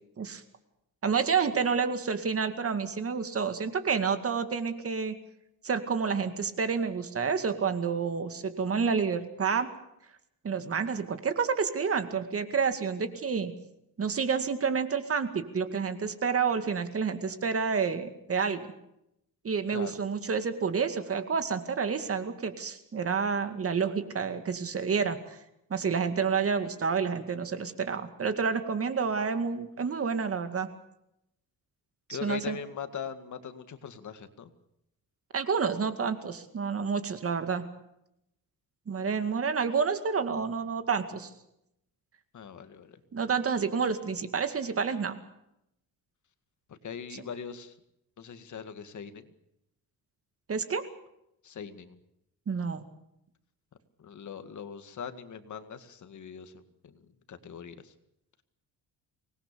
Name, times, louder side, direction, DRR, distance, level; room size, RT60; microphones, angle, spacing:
voice 1, 1.0-5.2 5.6-9.7 10.4-13.5 14.0-18.7 19.4-25.4 25.7-30.7 32.1-32.6 35.3-37.6 38.9-41.3 43.1-45.2 47.1-47.2 50.5-50.8 52.5-52.8, right 5 dB, 40° right, 9 dB, 2.2 m, -29 dB
voice 2, 32.1-34.5 42.3-43.0 46.7-47.7 48.2-49.3 51.4-52.0 54.0-56.9 57.3-57.9, left 7 dB, 55° left, 9 dB, 2.0 m, -41 dB
25.0 x 20.0 x 6.9 m, 0.81 s
cardioid pair, 125°, 36 cm